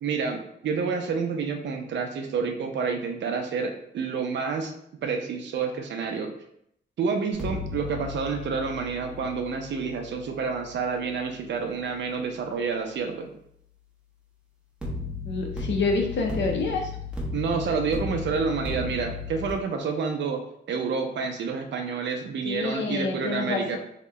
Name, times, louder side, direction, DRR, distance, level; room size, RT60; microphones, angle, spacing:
voice 1, 0.0-4.7 5.0-6.3 7.0-13.4 17.3-23.8, right 5 dB, 70° right, 5 dB, 0.5 m, -29 dB
sound 1, 7.3-12.4 14.8-19.5, left 3 dB, 5° right, 0.7 m, -36 dB
voice 2, 15.2-16.9 22.4-23.8, left 3 dB, 75° left, 1 dB, 0.6 m, -27 dB
2.8 x 2.1 x 3.5 m, 0.73 s
wide cardioid pair, 155°, 19 cm